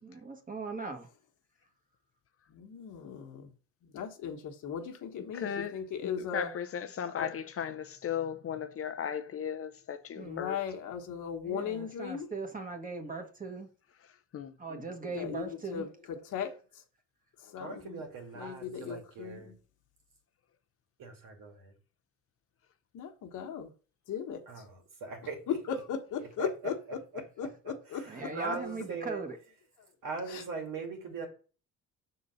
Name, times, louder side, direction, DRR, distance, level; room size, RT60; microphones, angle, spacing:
voice 1, 0.0-1.1 10.1-10.5 11.4-13.7 14.6-15.9 28.1-29.4, right 4 dB, 25° right, 1.4 m, -39 dB
voice 2, 2.5-3.5 3.9-6.5 7.2-7.3 10.2-12.3 15.1-15.4 15.7-15.8 16.3-16.5 17.5-18.0 18.3-19.5 22.9-23.7 24.1-24.4 25.9-26.7 27.4-27.5 27.9-28.0 30.3-30.4, left 8 dB, 65° left, 1.3 m, -37 dB
voice 3, 5.3-5.7 6.0-10.6 14.3-14.5, left 8 dB, 45° left, 0.6 m, -36 dB
voice 4, 17.6-19.5 21.0-21.7 24.5-25.6 26.4-29.2 30.0-31.3, right 3 dB, 70° right, 2.3 m, -40 dB
6.2 x 3.9 x 5.5 m
cardioid pair, 110°, 33 cm